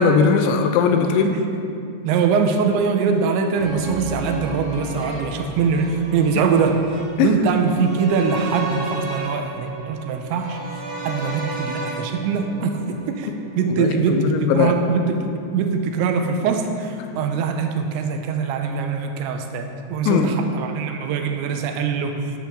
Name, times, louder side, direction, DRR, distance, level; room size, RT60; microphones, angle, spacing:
voice 1, 0.0-1.4 7.2-7.4 13.3-13.4 13.7-14.7 20.1-20.4, left 6 dB, 80° left, 6 dB, 2.9 m, -19 dB
voice 2, 1.0-1.4 2.0-6.9 7.2-10.6 11.0-13.3 13.6-22.3, right 5 dB, 80° right, 5 dB, 3.0 m, -22 dB
sound 1, 3.6-13.7 14.0-14.1, right 2 dB, 45° right, 2.0 m, -33 dB
13.0 x 11.5 x 3.8 m, 2.7 s
omnidirectional pair, 5.4 m